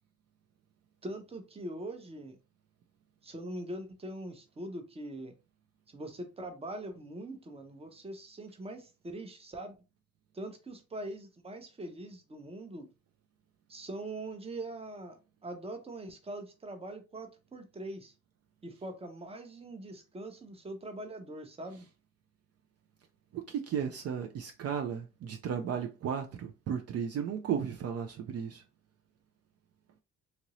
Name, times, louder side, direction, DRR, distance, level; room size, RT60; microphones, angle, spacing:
voice 1, 1.0-2.4 3.2-5.3 5.9-9.7 10.3-12.9 13.7-15.2 15.4-18.1 18.6-21.9, right 1 dB, 20° right, 0.7 m, -42 dB
voice 2, 23.3-28.6, right 8 dB, 55° right, 0.5 m, -34 dB
2.9 x 2.5 x 3.0 m
cardioid pair, 90°, 30 cm